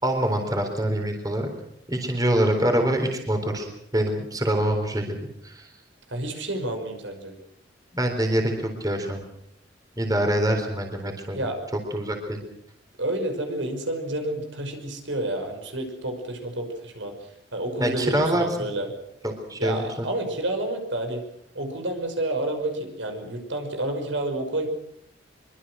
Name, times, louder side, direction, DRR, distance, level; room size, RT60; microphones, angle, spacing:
voice 1, 0.0-1.5 1.9-5.7 7.9-9.2 10.0-11.5 11.9-12.4 17.8-18.7 19.2-20.1, right 1 dB, 20° right, 4 dB, 3.9 m, -25 dB
voice 2, 6.1-7.3 11.3-11.6 13.0-17.1 17.5-18.9 19.6-21.2 21.5-24.7, right 1 dB, 75° right, 5 dB, 5.7 m, -29 dB
24.5 x 24.0 x 6.4 m, 0.73 s
head